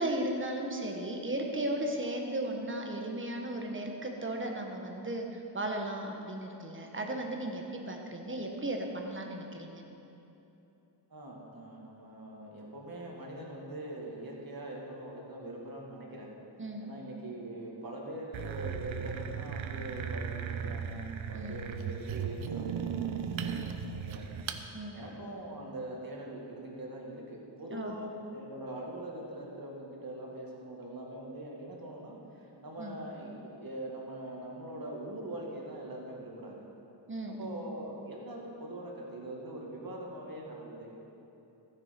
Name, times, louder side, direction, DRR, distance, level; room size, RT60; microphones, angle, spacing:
voice 1, 0.0-9.8 16.6-16.9 21.3-21.6 24.7-25.0 27.7-27.9 32.8-33.0 37.1-37.6, right 1 dB, 25° right, 2 dB, 1.4 m, -35 dB
voice 2, 11.1-16.3 16.8-36.6 37.3-40.9, right 1 dB, 50° right, -2 dB, 2.2 m, -42 dB
sound 1, 18.3-24.6, right 7 dB, 85° right, 0.7 m, -37 dB
15.0 x 7.0 x 5.2 m, 3.0 s
wide cardioid pair, 80°, 46 cm